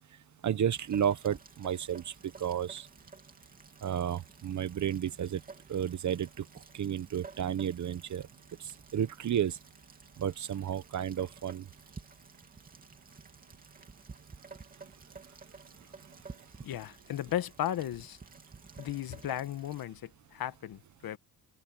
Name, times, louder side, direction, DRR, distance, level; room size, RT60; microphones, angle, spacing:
voice 1, 0.4-2.1 2.4-2.9 3.8-5.4 5.7-6.4 6.7-8.3 8.9-9.6 10.2-11.6, right 9 dB, 50° right, 1.2 m, -32 dB
Rain, 0.7-19.9, right 4 dB, 20° right, 3.1 m, -53 dB
voice 2, 16.6-18.2 18.8-21.2, left 12 dB, 65° left, 1.5 m, -35 dB
cardioid pair, 130°, 38 cm